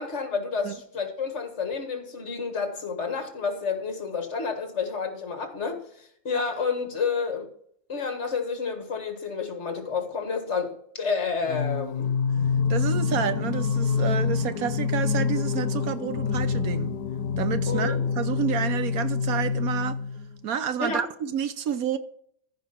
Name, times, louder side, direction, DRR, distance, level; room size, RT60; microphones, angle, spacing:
voice 1, 0.0-7.5 7.9-12.2 17.7-18.0 20.8-21.0, left 5 dB, 50° left, 1.9 m, -30 dB
Singing, 11.4-20.4, left 5 dB, 80° left, 1.2 m, -26 dB
voice 2, 12.7-16.9 17.4-20.0 20.4-22.0, right 8 dB, 70° right, 1.1 m, -29 dB
14.5 x 5.1 x 5.8 m
omnidirectional pair, 1.6 m